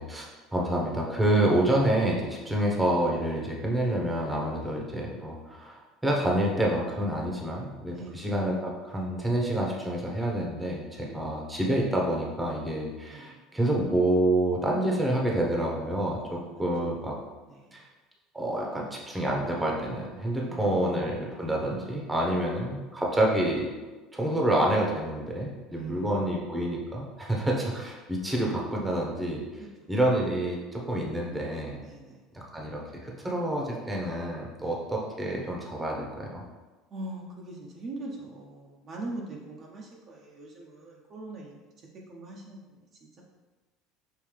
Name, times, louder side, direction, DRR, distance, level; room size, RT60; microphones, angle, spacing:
voice 1, 0.0-17.2 17.7-17.8 18.3-23.7 24.1-29.4 29.9-31.8 32.3-36.4, right 1 dB, 10° right, -2 dB, 1.0 m, -28 dB
voice 2, 7.9-8.3 11.0-11.5 13.1-13.4 16.2-16.4 17.4-17.8 20.4-20.9 22.3-22.4 25.7-26.3 31.8-32.2 34.6-34.8 36.9-41.6 42.1-42.9, right 2 dB, 40° right, -2 dB, 0.7 m, -42 dB
5.4 x 2.7 x 3.3 m, 1.2 s
supercardioid pair, 105°, 0 cm